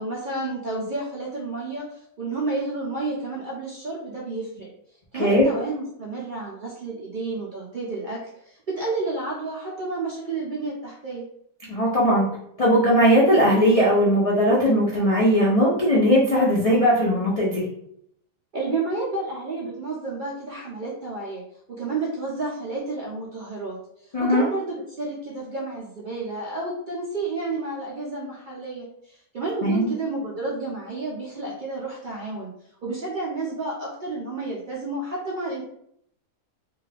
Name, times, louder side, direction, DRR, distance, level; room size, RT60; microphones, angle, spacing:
voice 1, 0.0-4.7 5.1-11.2 18.5-21.4 21.7-32.5 32.8-35.6, right 3 dB, 60° right, -5 dB, 0.5 m, -31 dB
voice 2, 11.6-12.3 12.6-17.6 24.1-24.4 29.6-29.9, equal, 60° left, -5 dB, 0.3 m, -19 dB
2.6 x 2.3 x 3.2 m, 0.71 s
omnidirectional pair, 1.5 m